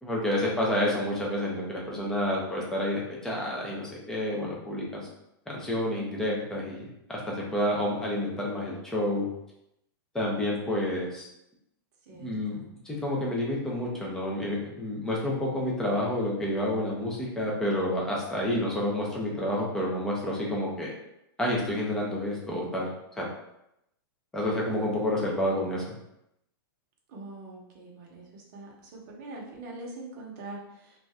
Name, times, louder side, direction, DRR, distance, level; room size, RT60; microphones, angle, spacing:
voice 1, 0.0-5.1 5.5-9.3 10.1-11.2 12.2-20.9 21.4-22.9 23.2-23.3 24.3-25.8, left 1 dB, 5° left, -4 dB, 0.5 m, -29 dB
voice 2, 12.1-12.7 27.1-30.9, right 2 dB, 40° right, -2 dB, 0.8 m, -43 dB
2.6 x 2.2 x 3.4 m, 0.82 s
supercardioid pair, 160°, 13 cm